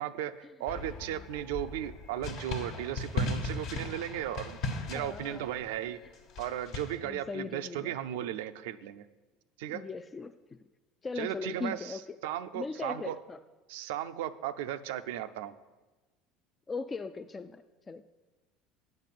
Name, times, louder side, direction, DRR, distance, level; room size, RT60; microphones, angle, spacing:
voice 1, 0.0-4.6 4.9-6.0 6.4-9.1 9.6-9.8 11.2-13.2 13.7-15.5, right 11 dB, 85° right, 12 dB, 0.5 m, -36 dB
sound 1, 0.7-7.0, left 2 dB, 65° left, 1.4 m, -37 dB
voice 2, 4.9-5.5 7.0-7.9 9.7-10.6 11.0-12.2 12.5-13.4 16.7-18.0, left 4 dB, 20° left, 9 dB, 0.3 m, -39 dB
9.1 x 5.4 x 7.5 m, 1.2 s
supercardioid pair, 110°, 0 cm